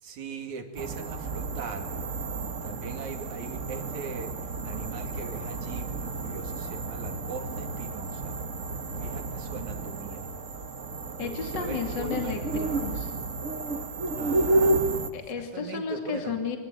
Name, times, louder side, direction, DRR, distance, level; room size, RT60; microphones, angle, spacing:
voice 1, 0.0-2.1 2.6-4.3 4.6-8.4 9.0-10.3 11.2-12.4 14.2-14.8 15.1-15.2 15.5-16.4, right 5 dB, 65° right, 5 dB, 3.8 m, -40 dB
sound 1, 0.7-15.1, right 2 dB, 50° right, 0.9 m, -31 dB
voice 2, 11.2-13.1 15.1-16.6, left 5 dB, 35° left, 4 dB, 3.0 m, -33 dB
25.0 x 25.0 x 9.1 m, 1.1 s
omnidirectional pair, 3.7 m